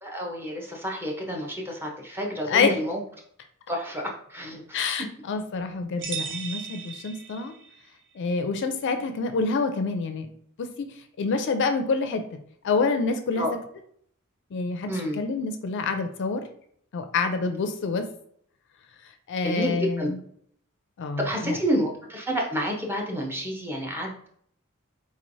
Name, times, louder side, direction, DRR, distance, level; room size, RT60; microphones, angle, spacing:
voice 1, 0.0-3.0 3.7-4.8 13.3-13.5 14.9-15.2 19.4-20.1 21.2-24.3, equal, 10° right, 0 dB, 0.6 m, -29 dB
voice 2, 4.7-7.5 8.2-10.3 10.6-10.9 11.2-12.2 12.6-13.5 14.5-16.4 16.9-18.1 19.3-20.2 21.0-21.6, left 4 dB, 55° left, 7 dB, 0.4 m, -27 dB
sound 1, 6.0-7.8, right 7 dB, 55° right, 0.6 m, -36 dB
3.8 x 3.1 x 2.6 m, 0.64 s
head